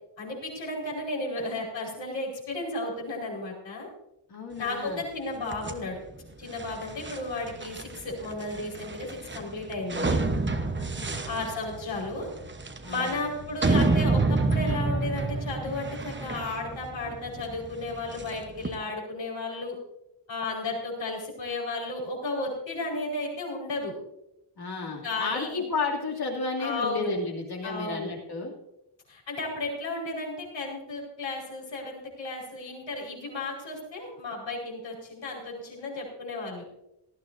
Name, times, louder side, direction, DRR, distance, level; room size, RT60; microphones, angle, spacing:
voice 1, 0.2-3.9 4.6-6.0 6.4-10.2 11.2-12.3 12.9-19.8 20.3-23.9 25.0-25.6 26.6-27.2 27.6-28.1 29.1-36.7, left 2 dB, 85° left, -2 dB, 5.0 m, -33 dB
voice 2, 4.3-5.1 10.7-11.3 12.8-13.2 24.6-28.5, left 3 dB, 60° left, -1 dB, 2.8 m, -33 dB
sound 1, 5.5-18.7, right 3 dB, 25° right, 1.1 m, -29 dB
18.0 x 14.5 x 2.7 m, 0.85 s
wide cardioid pair, 130°, 43 cm